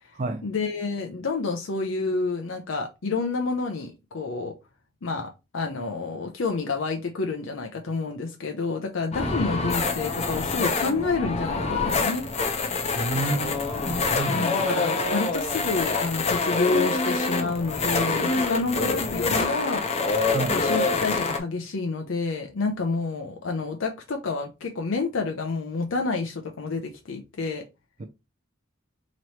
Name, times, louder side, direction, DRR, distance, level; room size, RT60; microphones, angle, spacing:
voice 1, 0.4-4.5 5.0-12.3 14.3-19.8 20.5-27.6, left 3 dB, 75° left, 0.6 m, -29 dB
sound 1, 9.1-21.4, left 3 dB, 35° left, 0.7 m, -26 dB
voice 2, 12.9-13.6 13.9-14.5 20.3-20.6 28.0-28.1, right 2 dB, 40° right, 0.4 m, -29 dB
3.1 x 3.0 x 4.1 m
head